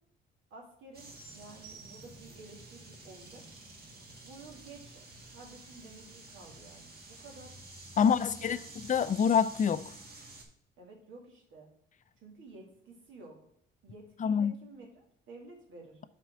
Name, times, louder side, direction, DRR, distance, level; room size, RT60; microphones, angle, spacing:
voice 1, 0.5-3.4 4.2-5.0 5.3-7.5 7.9-8.7 10.8-11.7 12.2-13.4 13.8-16.1, right 3 dB, 80° right, 2.4 m, -51 dB
sound 1, 0.9-10.4, right 2 dB, 50° right, 2.1 m, -50 dB
voice 2, 8.0-8.6 8.9-9.9 14.2-14.5, left 7 dB, 40° left, 0.5 m, -26 dB
5.7 x 4.6 x 6.3 m
cardioid pair, 90°, 20 cm